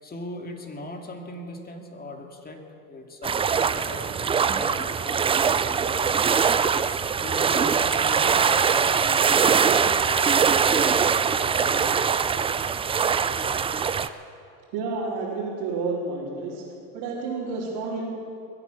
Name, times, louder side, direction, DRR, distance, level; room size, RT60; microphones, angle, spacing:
voice 1, 0.0-12.5, left 2 dB, 20° left, 3 dB, 2.4 m, -40 dB
sound 1, 3.2-14.1, right 6 dB, 15° right, 0.4 m, -22 dB
voice 2, 14.7-16.6 16.9-18.1, right 3 dB, 65° right, -8 dB, 4.0 m, -30 dB
21.5 x 9.0 x 7.0 m, 2.6 s
hypercardioid pair, 95°, 41 cm